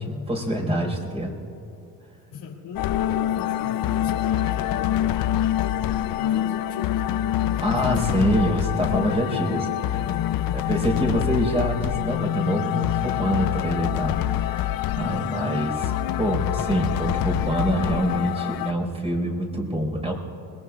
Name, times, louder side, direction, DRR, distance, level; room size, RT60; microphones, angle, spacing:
voice 1, 0.0-1.4 7.6-9.6 10.5-20.1, equal, 15° right, 0 dB, 4.6 m, -25 dB
voice 2, 2.3-8.8 9.1-10.9, left 6 dB, 75° left, -1 dB, 2.7 m, -38 dB
sound 1, 2.8-18.7, left 12 dB, 60° left, 0.6 m, -25 dB
26.0 x 21.5 x 2.4 m, 2.6 s
cardioid pair, 110°, 40 cm